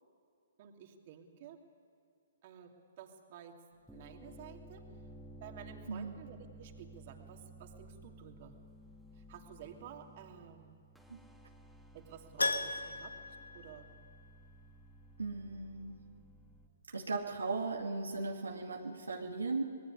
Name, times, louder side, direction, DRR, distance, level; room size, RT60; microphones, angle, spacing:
voice 1, 0.6-1.6 2.4-3.6 3.9-4.9 5.4-8.6 9.1-10.8 11.9-13.9, right 9 dB, 45° right, 3 dB, 2.8 m, -52 dB
sound 1, 3.7-16.7, right 1 dB, ahead, 2.4 m, -55 dB
Keyboard (musical), 12.4-14.4 14.7-14.8 17.5-17.6 17.8-17.9, left 2 dB, 85° left, 1.7 m, -37 dB
voice 2, 15.2-16.0 16.9-19.6, right 3 dB, 80° right, 1 dB, 2.3 m, -37 dB
26.0 x 20.0 x 9.8 m, 2.5 s
figure-of-eight pair, 125°, 0 cm